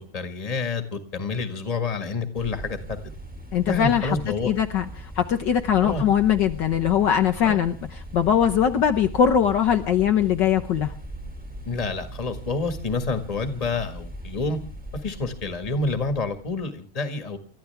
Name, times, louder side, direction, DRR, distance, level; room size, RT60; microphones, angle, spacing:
voice 1, 0.0-3.0 3.7-4.5 5.8-6.0 7.4-7.6 11.6-14.6 15.0-17.4, left 3 dB, 20° left, 8 dB, 1.6 m, -28 dB
sound 1, 2.4-16.6, right 1 dB, 5° right, 1.7 m, -40 dB
voice 2, 3.5-4.2 4.4-10.9, left 9 dB, 65° left, 5 dB, 1.5 m, -21 dB
29.0 x 13.5 x 3.5 m, 0.36 s
omnidirectional pair, 2.3 m